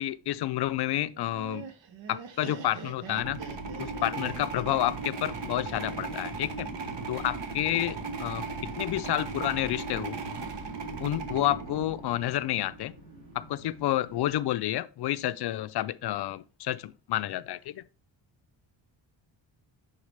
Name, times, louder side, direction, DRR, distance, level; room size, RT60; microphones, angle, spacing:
voice 1, 0.0-1.7 2.1-3.4 3.8-6.7 7.1-10.2 11.0-12.9 13.3-17.8, left 13 dB, 60° left, 0.5 m, -30 dB
Laughter, 1.1-6.2, right 6 dB, 85° right, 1.2 m, -44 dB
sound 1, 3.0-12.4, right 4 dB, 65° right, 1.3 m, -37 dB
sound 2, 4.3-14.3, right 1 dB, 40° right, 2.7 m, -51 dB
10.5 x 3.9 x 3.3 m
wide cardioid pair, 165°, 45 cm